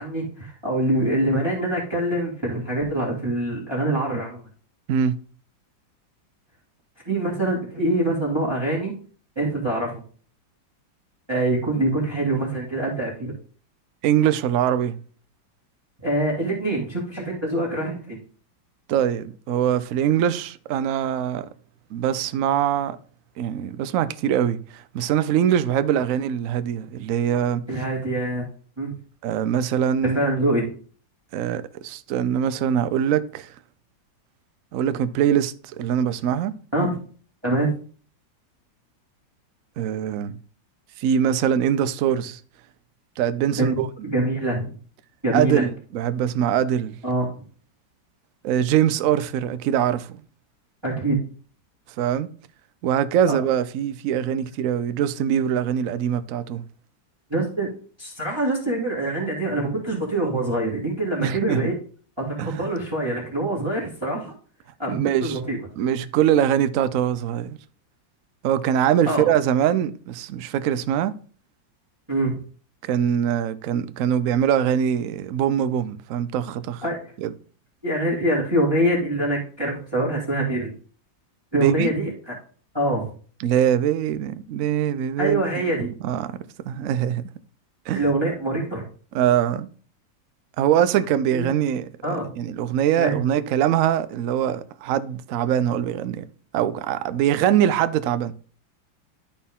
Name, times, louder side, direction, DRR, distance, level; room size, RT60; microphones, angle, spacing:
voice 1, 0.0-4.4 7.1-8.9 9.4-10.0 11.3-13.3 16.0-18.2 27.7-28.4 28.8-28.9 30.0-30.7 36.7-37.0 37.4-37.7 43.6-44.7 45.2-45.6 47.0-47.3 50.8-51.2 53.3-53.4 57.3-57.7 58.0-61.7 62.4-64.3 64.8-65.6 69.1-69.3 72.1-72.4 76.8-77.0 77.8-80.7 81.5-82.3 82.7-83.1 85.2-85.9 88.0-88.8 91.3-91.5 92.0-92.3 93.0-93.1, right 1 dB, 15° right, 1.9 m, -24 dB
voice 2, 4.9-5.2 14.0-15.0 18.9-21.5 21.9-23.0 23.4-27.6 29.2-30.2 31.3-33.5 34.7-36.5 39.8-40.4 41.0-42.4 43.2-43.9 45.3-47.0 48.4-50.2 52.0-52.3 52.8-56.6 61.2-61.6 62.4-62.6 64.9-65.4 65.8-67.6 68.4-71.1 72.8-76.8 77.2-77.3 81.5-81.9 83.4-87.2 87.9-88.0 89.1-89.7 90.6-96.2 96.5-98.3, right 9 dB, 80° right, 0.7 m, -23 dB
11.5 x 4.4 x 3.5 m
omnidirectional pair, 2.1 m